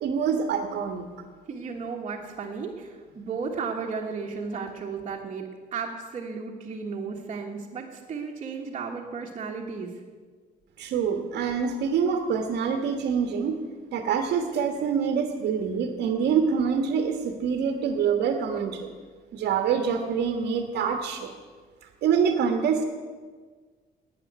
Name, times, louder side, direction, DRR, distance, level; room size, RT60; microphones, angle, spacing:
voice 1, 0.0-1.1 10.8-13.6 13.9-18.9 19.3-21.3 22.0-22.8, right 6 dB, 80° right, 5 dB, 1.4 m, -25 dB
voice 2, 1.5-9.9, right 5 dB, 35° right, -4 dB, 1.5 m, -34 dB
12.5 x 9.3 x 9.4 m, 1.5 s
cardioid pair, 175°, 17 cm